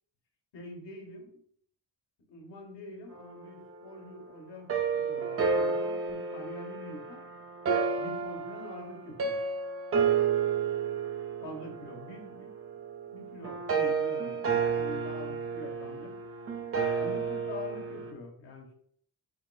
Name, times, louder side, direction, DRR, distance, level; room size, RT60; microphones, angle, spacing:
voice 1, 0.5-1.4 2.3-7.2 8.0-9.4 11.4-12.5 13.1-16.1 17.0-18.7, left 2 dB, 80° left, 0 dB, 1.3 m, -45 dB
sound 1, 4.7-18.1, right 5 dB, 35° right, 0.4 m, -31 dB
4.3 x 3.6 x 2.3 m, 0.63 s
wide cardioid pair, 175°, 42 cm